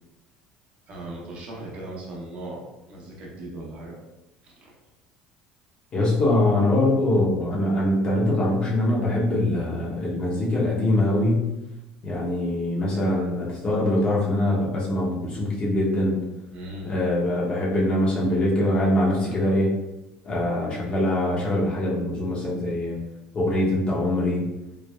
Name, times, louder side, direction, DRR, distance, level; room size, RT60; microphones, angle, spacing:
voice 1, 0.9-4.0 4.4-4.7 16.5-16.9, right 1 dB, 55° right, -3 dB, 0.8 m, -38 dB
voice 2, 5.9-11.5 12.0-16.2 16.8-19.7 20.2-23.0 23.3-24.5, left 1 dB, 40° left, -4 dB, 0.8 m, -23 dB
3.2 x 2.1 x 2.3 m, 0.94 s
supercardioid pair, 105°, 3 cm